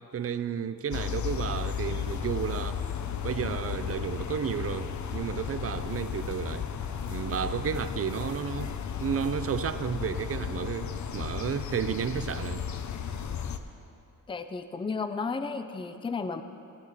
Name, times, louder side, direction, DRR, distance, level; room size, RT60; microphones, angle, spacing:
voice 1, 0.1-6.7 7.1-8.7 9.0-12.6, right 8 dB, 45° right, 13 dB, 0.5 m, -32 dB
sound 1, 0.9-13.6, left 7 dB, 65° left, 0.6 m, -34 dB
voice 2, 14.3-16.4, left 4 dB, 15° left, 9 dB, 0.5 m, -33 dB
16.0 x 8.7 x 4.1 m, 2.7 s
cardioid pair, 90°, 32 cm